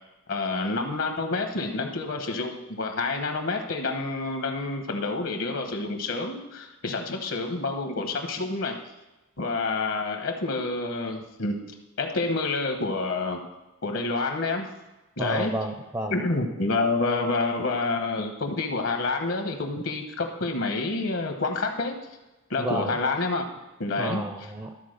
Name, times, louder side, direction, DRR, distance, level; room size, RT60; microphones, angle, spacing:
voice 1, 0.3-8.8 9.4-11.6 12.0-13.4 13.8-14.7 15.2-15.5 16.1-22.0 22.5-23.4 23.8-24.2, left 3 dB, 70° left, 4 dB, 1.0 m, -28 dB
voice 2, 15.2-16.2 22.6-22.9 24.0-24.7, right 1 dB, 15° right, 4 dB, 0.5 m, -31 dB
12.5 x 4.6 x 6.4 m, 1.1 s
head